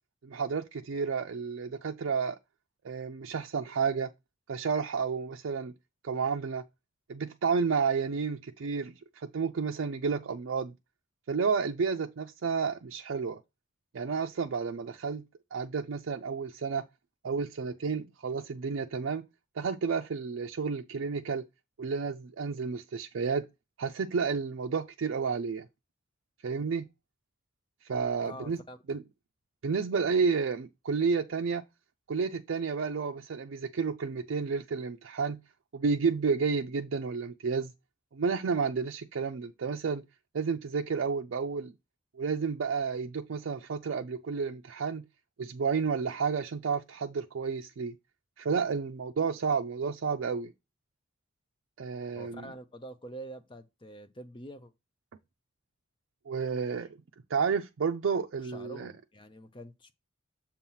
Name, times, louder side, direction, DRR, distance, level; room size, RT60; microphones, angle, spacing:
voice 1, 0.2-2.4 2.8-4.1 4.5-5.7 6.0-6.6 7.1-10.7 11.3-13.4 13.9-15.2 15.5-16.8 17.2-19.2 19.6-21.4 21.8-23.5 23.8-25.7 26.4-26.9 27.9-28.6 28.9-29.0 29.6-31.6 32.1-35.4 35.7-37.7 38.1-40.0 40.3-41.7 42.2-45.0 45.4-47.9 48.4-50.5 51.8-52.5 56.3-56.9 57.3-58.9, right 5 dB, 70° right, 0.4 m, -31 dB
voice 2, 28.2-28.8 52.2-54.7 58.4-59.9, right 1 dB, 25° left, 0.6 m, -46 dB
7.1 x 2.9 x 5.5 m
head